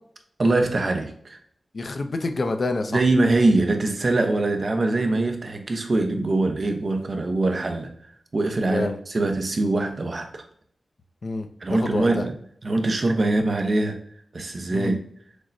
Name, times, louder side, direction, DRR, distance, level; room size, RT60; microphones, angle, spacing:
voice 1, 0.4-1.4 2.9-7.9 8.3-10.4 11.6-12.3 12.6-14.0 14.3-15.0, right 2 dB, 55° right, 5 dB, 0.6 m, -23 dB
voice 2, 1.7-3.0 8.7-9.0 11.2-12.2 14.7-15.0, left 3 dB, 55° left, 7 dB, 0.5 m, -27 dB
6.2 x 2.1 x 2.6 m, 0.66 s
wide cardioid pair, 70°, 0 cm